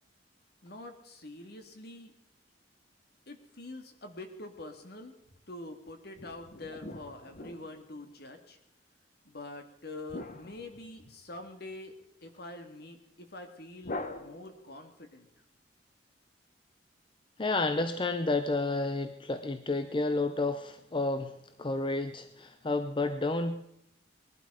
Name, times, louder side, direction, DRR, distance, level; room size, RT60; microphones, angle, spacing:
voice 1, 0.6-2.1 3.3-5.1 5.5-8.6 9.2-15.3, left 2 dB, 60° left, 6 dB, 2.1 m, -45 dB
sound 1, 6.2-8.2 10.1-11.5 13.8-14.9, left 2 dB, 45° left, 1.2 m, -43 dB
voice 2, 17.4-21.3 21.6-23.6, left 2 dB, 25° left, 9 dB, 0.6 m, -30 dB
20.5 x 12.0 x 5.0 m, 0.83 s
head